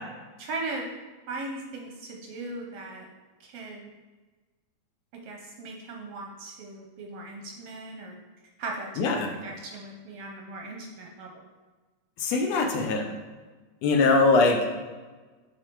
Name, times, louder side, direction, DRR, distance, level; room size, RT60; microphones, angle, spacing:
voice 1, 0.4-0.9 1.3-3.1 3.4-3.9 5.2-8.2 8.6-11.4 14.0-14.3, right 2 dB, 70° right, 1 dB, 1.5 m, -38 dB
voice 2, 9.0-9.3 12.2-13.1 13.8-14.7, left 3 dB, 75° left, 3 dB, 1.7 m, -22 dB
8.6 x 4.1 x 4.5 m, 1.3 s
omnidirectional pair, 3.5 m